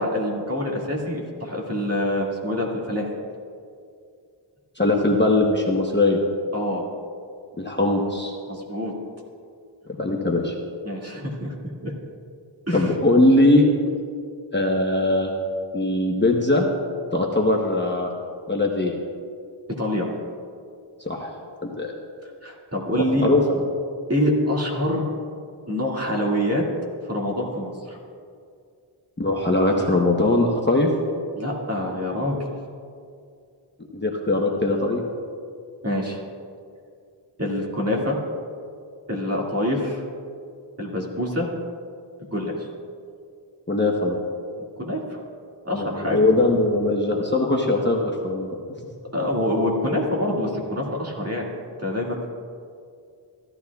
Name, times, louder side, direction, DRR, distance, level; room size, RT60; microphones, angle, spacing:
voice 1, 0.0-3.1 6.5-6.8 8.5-8.9 10.8-11.5 11.8-11.9 12.7-12.9 19.8-20.1 22.4-23.3 24.1-25.0 25.7-26.6 27.1-28.0 31.3-32.4 35.8-36.2 37.4-38.2 39.1-40.0 40.8-41.5 42.3-42.5 44.8-45.2 45.6-46.3 49.1-51.5 51.8-52.3, left 1 dB, 30° right, -2 dB, 2.0 m, -25 dB
voice 2, 4.8-6.2 7.6-8.3 10.0-10.5 12.7-13.7 14.5-15.3 15.7-16.6 17.1-18.1 18.5-18.9 21.0-21.3 21.8-21.9 23.2-23.4 29.2-30.9 33.9-35.0 43.7-44.2 45.7-48.6, left 2 dB, 20° left, -1 dB, 0.9 m, -20 dB
15.5 x 12.0 x 2.3 m, 2.3 s
wide cardioid pair, 85°, 49 cm